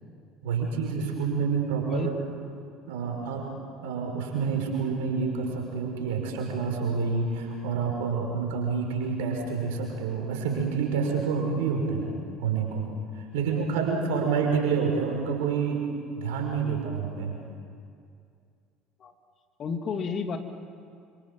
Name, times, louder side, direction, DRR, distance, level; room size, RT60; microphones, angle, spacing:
voice 1, 0.4-2.1 2.9-3.5 3.8-12.1 12.4-17.4, right 5 dB, 65° right, 1 dB, 5.9 m, -28 dB
voice 2, 19.6-20.4, left 5 dB, 40° left, 6 dB, 2.4 m, -31 dB
29.0 x 26.0 x 7.7 m, 2.4 s
figure-of-eight pair, 60°, 0 cm